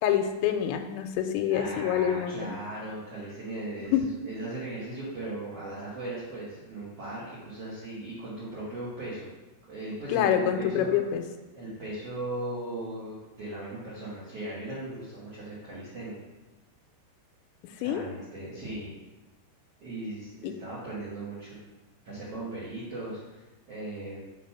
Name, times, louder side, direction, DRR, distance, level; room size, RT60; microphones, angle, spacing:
voice 1, 0.0-2.6 3.9-4.1 10.1-11.2 17.8-18.0 20.4-20.5, left 9 dB, 90° left, 5 dB, 2.8 m, -26 dB
voice 2, 1.5-9.3 9.7-11.0 11.5-16.2 17.8-18.9 19.8-21.6 22.0-24.2, right 2 dB, 80° right, -9 dB, 1.3 m, -38 dB
6.3 x 3.3 x 5.6 m, 1.1 s
omnidirectional pair, 5.0 m